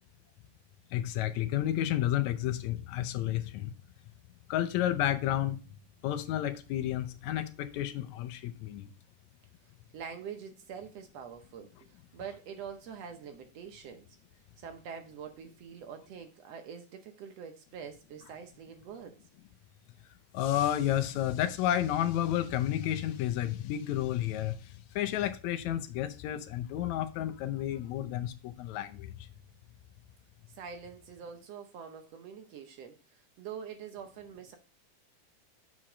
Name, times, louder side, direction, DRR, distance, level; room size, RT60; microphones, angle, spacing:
voice 1, 0.9-3.7 4.5-5.6 6.0-8.9 20.3-24.5 25.0-29.2, left 12 dB, 80° left, 1.9 m, -31 dB
voice 2, 9.9-14.1 14.6-19.2 30.5-34.6, right 7 dB, 70° right, 1.7 m, -45 dB
7.2 x 4.6 x 5.0 m
omnidirectional pair, 3.3 m